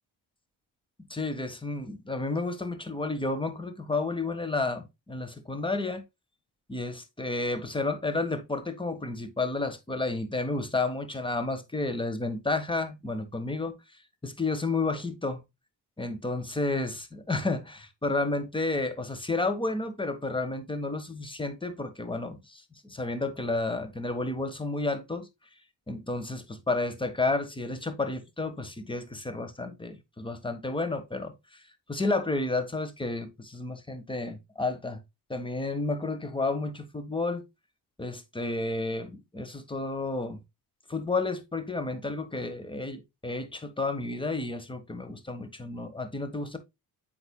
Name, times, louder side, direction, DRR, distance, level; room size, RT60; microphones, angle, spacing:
voice 1, 1.1-6.0 6.7-13.7 14.2-15.4 16.0-25.3 25.9-31.6 31.9-35.0 35.3-37.4 38.0-40.4 40.9-46.6, left 3 dB, 10° left, 1.3 m, -31 dB
7.8 x 5.8 x 2.2 m
cardioid pair, 80°, 41 cm